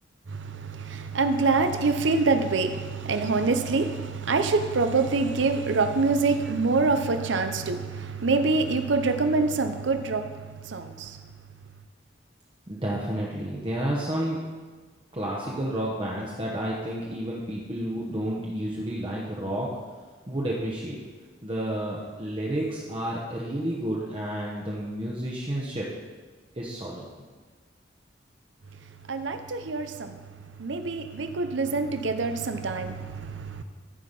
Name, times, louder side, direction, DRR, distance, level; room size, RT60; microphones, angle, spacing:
voice 1, 0.3-11.2 29.1-30.2 30.6-33.6, right 3 dB, 80° right, 8 dB, 0.7 m, -25 dB
voice 2, 12.7-14.4 15.1-19.7 20.3-21.0 21.4-25.9 26.5-27.0, right 1 dB, 30° right, -4 dB, 1.0 m, -30 dB
13.5 x 4.7 x 5.4 m, 1.4 s
head